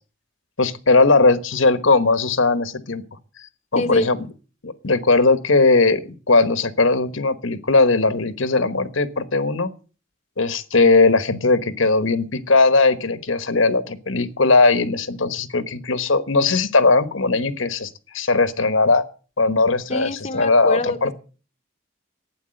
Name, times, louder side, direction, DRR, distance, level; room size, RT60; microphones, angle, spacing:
voice 1, 0.6-3.0 3.7-4.3 4.6-9.7 10.4-19.1 19.4-21.1, left 3 dB, 70° left, 12 dB, 1.2 m, -18 dB
voice 2, 3.7-4.1 19.9-21.0, left 2 dB, 30° left, 8 dB, 1.0 m, -24 dB
12.0 x 9.5 x 7.7 m, 0.37 s
head